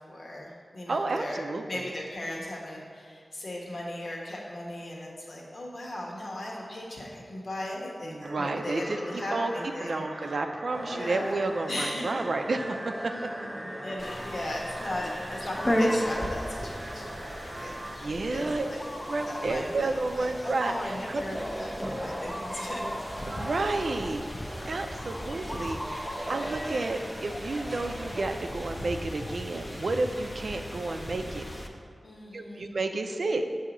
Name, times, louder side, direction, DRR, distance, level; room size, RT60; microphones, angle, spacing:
voice 1, 0.1-10.3 10.9-12.2 13.1-18.0 18.3-18.8 19.3-19.9 20.1-21.7 22.0-23.1 32.0-32.7, left 1 dB, 65° left, -3 dB, 1.2 m, -37 dB
voice 2, 0.9-1.8 8.0-9.0 9.3-9.5 9.8-13.3 18.0-18.7 19.1-21.2 23.3-24.3 24.7-31.5 32.3-33.5, right 3 dB, 70° right, 6 dB, 0.4 m, -31 dB
sound 1, 8.2-18.0, right 1 dB, 50° right, 0.8 m, -41 dB
sound 2, 10.7-28.2, equal, 20° right, 1.1 m, -41 dB
sound 3, 14.0-31.7, equal, 20° left, 0.6 m, -36 dB
7.7 x 2.8 x 6.0 m, 2.2 s
wide cardioid pair, 85°, 0 cm